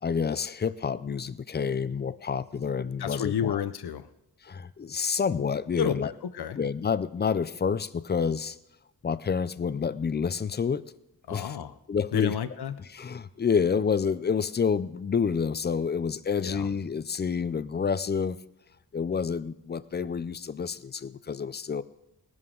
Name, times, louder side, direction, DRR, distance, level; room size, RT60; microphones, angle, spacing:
voice 1, 0.0-3.6 4.4-6.1 6.6-8.6 9.0-10.8 11.3-11.6 11.9-12.3 12.9-18.4 18.9-21.8, left 6 dB, 30° left, 16 dB, 0.4 m, -28 dB
voice 2, 3.0-4.1 5.7-6.6 11.3-11.7 12.1-12.8 16.4-16.7, left 8 dB, 80° left, 13 dB, 0.8 m, -31 dB
20.0 x 11.0 x 3.8 m, 0.86 s
wide cardioid pair, 170°, 38 cm